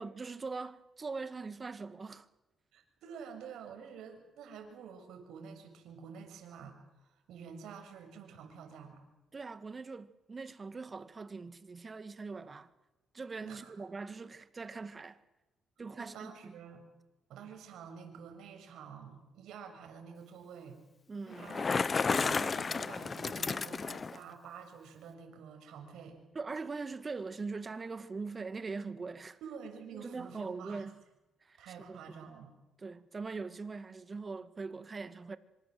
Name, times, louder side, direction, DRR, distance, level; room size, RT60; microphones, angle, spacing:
voice 1, 0.0-2.3 9.3-12.7 13.1-15.2 15.8-16.6 21.1-21.5 26.3-29.4 29.9-31.0 31.4-31.6 31.9-32.3 32.8-35.4, right 4 dB, 30° right, 2.0 m, -42 dB
voice 2, 2.7-6.8 7.1-9.0 13.4-13.7 16.0-16.8 17.3-20.8 21.3-26.2 29.4-30.8 31.6-32.5, right 6 dB, 80° right, 6.8 m, -49 dB
Bicycle, 21.3-24.2, left 4 dB, 35° left, 0.9 m, -32 dB
26.5 x 26.0 x 7.8 m
cardioid pair, 85°, 0 cm